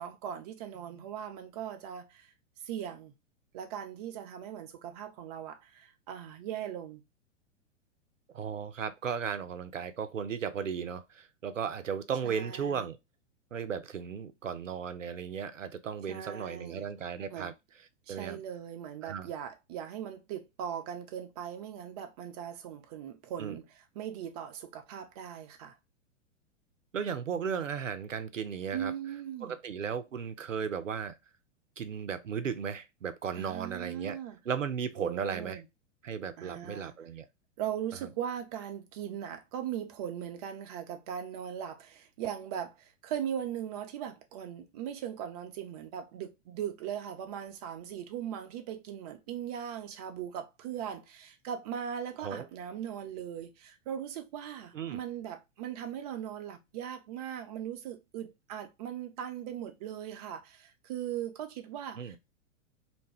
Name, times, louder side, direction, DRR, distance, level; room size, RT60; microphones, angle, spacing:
voice 1, 0.0-2.3 2.6-3.1 3.5-7.0 12.2-12.9 16.1-16.9 17.3-17.5 18.1-23.7 24.0-25.8 28.7-29.5 33.4-34.4 35.0-35.6 36.4-36.9 37.6-62.2, right 9 dB, 30° right, 0.5 m, -39 dB
voice 2, 8.3-13.0 13.5-17.5 18.1-18.4 19.0-19.3 23.4-23.6 26.9-28.9 29.4-31.2 31.8-34.2 34.5-35.6 36.0-37.3 38.0-38.1 52.2-52.5 54.7-55.0 62.0-62.2, right 7 dB, 85° right, 0.5 m, -35 dB
2.6 x 2.1 x 3.3 m
figure-of-eight pair, 100°, 37 cm